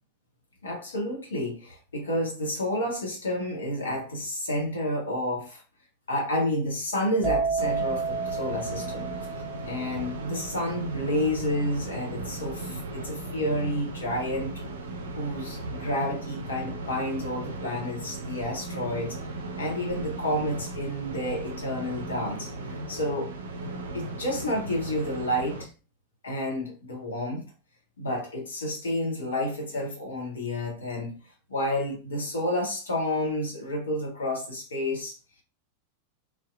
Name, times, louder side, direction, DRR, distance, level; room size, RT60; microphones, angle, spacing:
voice 1, 0.6-5.6 6.1-9.1 9.6-14.6 15.2-19.2 19.6-23.3 23.9-25.7 26.2-27.5 28.0-31.2 31.5-35.2, left 1 dB, 70° left, 0.7 m, -30 dB
sound 1, 7.2-14.8 15.1-15.6, right 4 dB, 15° right, 0.8 m, -32 dB
sound 2, 7.6-25.6, right 2 dB, 65° right, 0.4 m, -37 dB
2.7 x 2.0 x 2.4 m
figure-of-eight pair, 90°, 0 cm